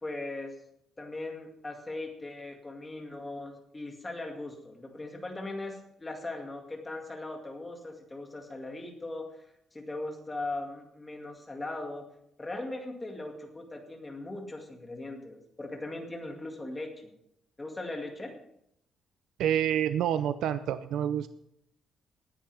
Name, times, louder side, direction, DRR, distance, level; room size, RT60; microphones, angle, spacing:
voice 1, 0.0-0.5 1.0-9.3 9.7-12.0 12.4-17.1 17.6-18.3, left 2 dB, 15° left, 2 dB, 2.1 m, -39 dB
voice 2, 19.4-21.3, right 10 dB, 90° right, 11 dB, 0.5 m, -28 dB
18.5 x 10.0 x 3.5 m, 0.75 s
cardioid pair, 180°, 0 cm